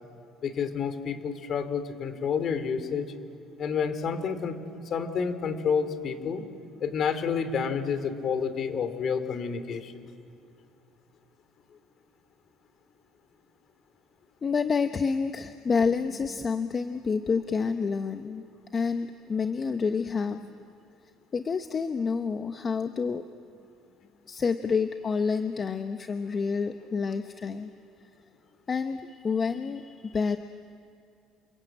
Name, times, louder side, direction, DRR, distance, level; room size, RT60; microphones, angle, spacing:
voice 1, 0.4-3.1 3.6-4.6 4.8-6.4 6.8-10.0, left 6 dB, 50° left, 10 dB, 2.8 m, -29 dB
voice 2, 14.4-18.4 18.7-20.6 21.3-23.2 24.3-27.7 28.7-30.4, left 5 dB, 30° left, 8 dB, 1.0 m, -28 dB
29.0 x 23.0 x 8.9 m, 2.4 s
cardioid pair, 115°, 0 cm